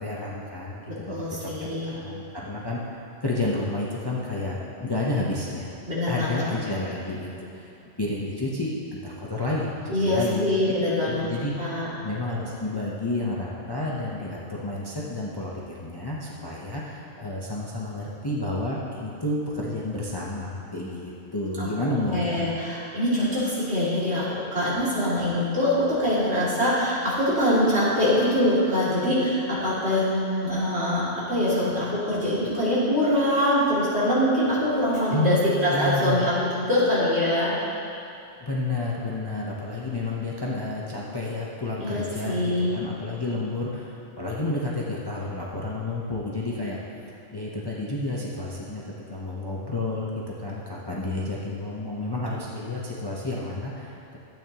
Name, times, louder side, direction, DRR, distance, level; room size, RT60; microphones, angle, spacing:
voice 1, 0.0-2.8 3.2-5.7 6.1-7.7 8.0-10.5 11.1-11.5 12.0-22.5 35.1-35.4 35.7-36.3 38.4-42.4 42.7-46.8 47.3-48.8 49.1-54.0, left 2 dB, 25° left, -5 dB, 0.7 m, -30 dB
voice 2, 0.9-1.9 5.9-6.4 9.9-11.3 11.6-11.9 21.6-21.7 22.1-37.5 41.8-42.8, left 1 dB, 60° right, -9 dB, 2.9 m, -24 dB
12.5 x 8.6 x 2.9 m, 2.7 s
omnidirectional pair, 1.2 m